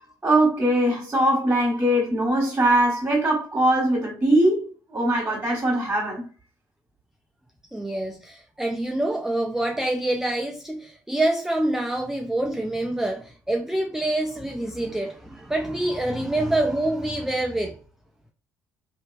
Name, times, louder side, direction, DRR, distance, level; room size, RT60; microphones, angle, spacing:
voice 1, 0.2-6.3, right 1 dB, 20° right, 1.4 m, -21 dB
voice 2, 7.7-17.8, right 1 dB, 5° right, 0.4 m, -26 dB
2.8 x 2.7 x 2.5 m
figure-of-eight pair, 50°, 11 cm